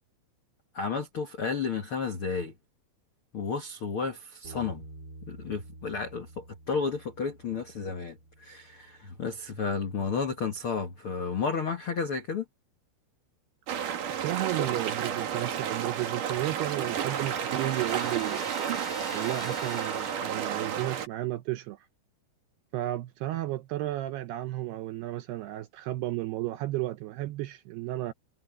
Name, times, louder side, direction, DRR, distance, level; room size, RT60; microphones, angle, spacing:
voice 1, 0.7-2.5 3.3-4.8 5.3-12.4, left 5 dB, 75° left, 1.2 m, -32 dB
Bass guitar, 4.4-10.7, right 2 dB, 20° right, 4.2 m, -50 dB
sound 1, 13.7-21.1, right 8 dB, 55° right, 3.0 m, -31 dB
voice 2, 14.2-18.5 19.1-21.9 22.7-28.1, right 16 dB, 80° right, 2.4 m, -33 dB
Trumpet, 16.1-20.6, left 4 dB, 25° left, 2.3 m, -45 dB
omnidirectional pair, 5.3 m